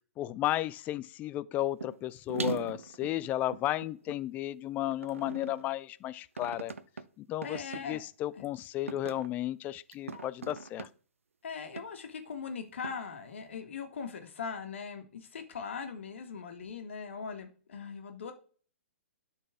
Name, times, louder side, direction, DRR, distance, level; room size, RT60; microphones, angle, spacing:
voice 1, 0.2-6.7 7.2-10.9, left 14 dB, 20° left, 0.4 m, -34 dB
sound 1, 1.8-2.0 2.3-4.2 4.9-5.7 6.4-7.0 7.4-7.8 8.4-8.6 8.9-9.3 9.9-10.9 11.8-11.9 12.8-12.9, right 5 dB, 75° right, 0.7 m, -39 dB
voice 2, 7.4-8.0 8.3-8.5 10.1-10.2 11.4-18.3, left 6 dB, 60° left, 1.6 m, -40 dB
12.0 x 4.1 x 3.5 m
figure-of-eight pair, 120°, 7 cm